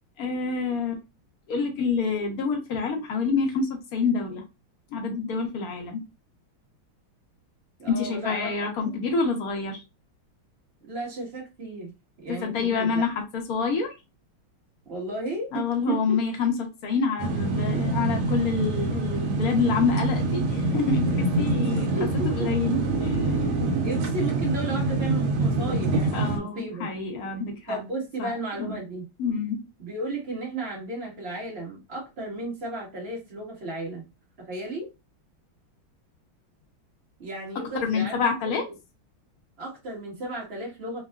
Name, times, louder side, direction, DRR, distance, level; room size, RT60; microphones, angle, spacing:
voice 1, 0.2-1.0 1.5-4.4 4.9-6.0 7.9-9.8 12.3-13.9 15.5-21.9 22.3-23.6 26.1-27.8 28.2-28.3 28.6-28.8 29.2-29.6 37.8-38.6, left 5 dB, 65° left, 0.9 m, -27 dB
voice 2, 7.8-9.0 10.9-11.9 12.2-13.0 14.8-16.2 21.8-22.5 23.8-26.9 27.7-29.1 29.8-34.1 34.4-34.9 37.2-38.7 39.6-41.0, right 2 dB, 35° right, 1.2 m, -34 dB
sound 1, 17.2-26.4, right 2 dB, 80° right, 1.5 m, -25 dB
3.6 x 2.2 x 2.3 m
omnidirectional pair, 2.3 m